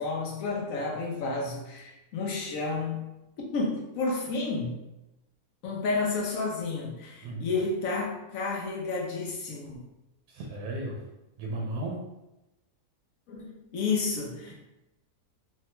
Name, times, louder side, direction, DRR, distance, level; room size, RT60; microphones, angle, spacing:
voice 1, 0.0-3.0 3.5-4.8 5.6-9.8 13.3-14.5, left 3 dB, 65° left, -2 dB, 1.0 m, -31 dB
voice 2, 10.3-11.0 11.4-12.0 14.5-14.6, right 1 dB, 85° right, 0 dB, 1.2 m, -35 dB
3.2 x 2.2 x 2.9 m, 0.95 s
omnidirectional pair, 1.8 m